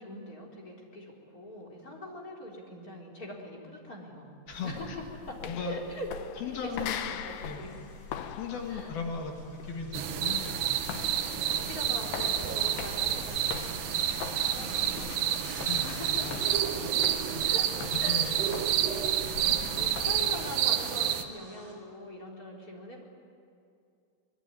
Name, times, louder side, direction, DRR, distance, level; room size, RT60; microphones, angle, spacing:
voice 1, 0.0-4.3 4.6-6.1 6.4-7.7 8.7-9.0 11.3-15.5 15.8-16.3 17.4-18.6 18.8-23.0, left 1 dB, 20° left, 0 dB, 3.9 m, -43 dB
sound 1, 4.5-20.3, left 8 dB, 85° left, 3.2 m, -42 dB
voice 2, 4.5-5.0 5.5-5.8 6.4-7.0 7.4-7.6 8.3-10.7 15.6-15.8 16.2-16.6 16.8-16.9 17.3-17.5 18.1-18.5, left 5 dB, 70° left, 2 dB, 3.7 m, -37 dB
sound 2, 6.9-21.7, equal, 10° right, 5.5 m, -49 dB
sound 3, 9.9-21.2, right 11 dB, 85° right, 3.1 m, -29 dB
23.5 x 22.5 x 9.8 m, 2.4 s
omnidirectional pair, 4.6 m